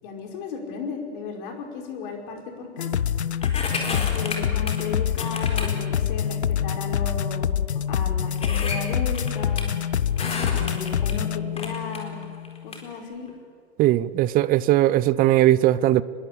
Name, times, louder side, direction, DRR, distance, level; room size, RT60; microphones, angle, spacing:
voice 1, 0.0-2.9 3.9-7.6 7.9-9.7 10.5-12.3 12.6-13.3, left 5 dB, 50° left, 5.0 m, -35 dB
sound 1, 2.8-12.7, left 9 dB, 80° left, 0.7 m, -26 dB
sound 2, 3.4-4.9 5.2-5.7 6.5-6.6 7.4-7.5 7.8-7.9 8.4-9.6 10.2-11.1 11.6-12.8 13.3-13.4, left 4 dB, 20° left, 4.2 m, -32 dB
voice 2, 13.8-16.0, right 14 dB, 25° right, 0.7 m, -19 dB
25.5 x 21.5 x 8.4 m
figure-of-eight pair, 95°, 33 cm